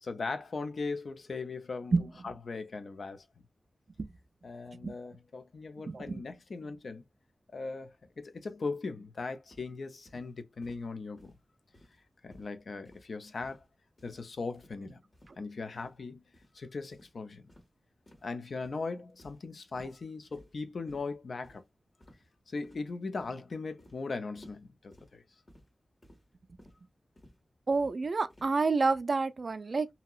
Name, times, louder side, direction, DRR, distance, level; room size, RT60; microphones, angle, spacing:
voice 1, 0.0-2.0 2.2-3.3 4.4-7.0 7.5-11.3 12.2-13.6 14.0-15.0 15.4-16.2 16.5-17.5 18.2-21.6 22.5-25.2, left 4 dB, 70° left, 0.5 m, -39 dB
voice 2, 5.9-6.2 27.7-29.9, right 4 dB, 60° right, 0.3 m, -28 dB
sound 1, 9.5-9.7 10.1-10.3 10.6-10.9 11.2-11.4 11.7-12.0 12.3-12.5 12.9-13.1 13.4-13.7 14.0-14.2 14.6-14.8 15.1-15.4 15.8-16.0 16.3-16.5 16.9-17.1 17.5-17.7 18.1-18.3 18.6-18.8 19.2-19.5 19.7-19.9 20.3-20.6 20.9-21.1 21.4-21.6 22.0-22.3 22.6-22.9 23.2-23.4 23.8-24.0 24.4-24.6 24.9-25.1 25.5-25.7 26.0-26.2 26.6-26.8 27.2-27.4 27.7-27.9 28.3-28.5, equal, 40° left, 1.5 m, -57 dB
2.8 x 2.8 x 2.3 m
wide cardioid pair, 85°, 0 cm